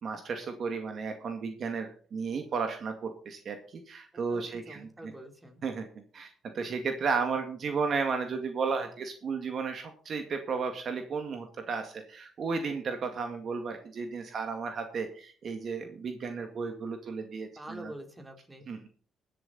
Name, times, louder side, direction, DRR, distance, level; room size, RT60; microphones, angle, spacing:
voice 1, 0.0-4.9 5.6-5.9 6.1-17.9 18.7-18.9, right 5 dB, 55° right, 6 dB, 2.0 m, -34 dB
voice 2, 4.3-5.6 17.6-18.7, right 1 dB, 15° right, 4 dB, 3.6 m, -46 dB
20.5 x 7.8 x 4.1 m, 0.43 s
cardioid pair, 90°, 0 cm